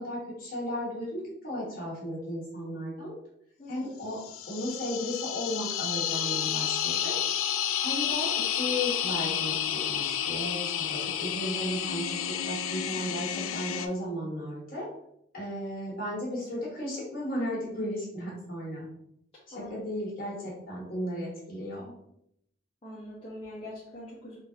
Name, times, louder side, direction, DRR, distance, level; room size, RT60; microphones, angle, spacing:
voice 1, 0.0-3.2 3.7-4.2 4.5-7.2 7.8-14.9 15.3-18.8 19.5-21.9, equal, 45° left, -5 dB, 1.3 m, -35 dB
voice 2, 3.6-4.1 19.5-19.8 22.8-24.4, left 1 dB, 30° left, -9 dB, 0.7 m, -43 dB
sound 1, 4.1-13.9, left 10 dB, 90° left, 0.3 m, -30 dB
3.6 x 2.5 x 2.8 m, 0.75 s
head